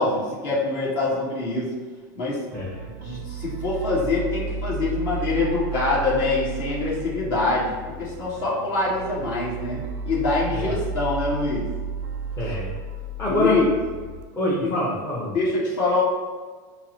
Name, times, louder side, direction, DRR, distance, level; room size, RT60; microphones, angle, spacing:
voice 1, 0.0-1.7 2.1-2.4 2.9-11.7 13.3-13.7 14.6-14.7 15.3-16.0, left 2 dB, 55° left, -5 dB, 1.4 m, -25 dB
voice 2, 2.5-2.9 10.5-10.7 12.4-12.7 13.2-13.6 14.3-15.4, left 1 dB, 30° left, -7 dB, 0.9 m, -25 dB
sound 1, 2.5-14.2, right 3 dB, 70° right, 0.4 m, -33 dB
5.5 x 2.0 x 2.9 m, 1.4 s
supercardioid pair, 120°, 10 cm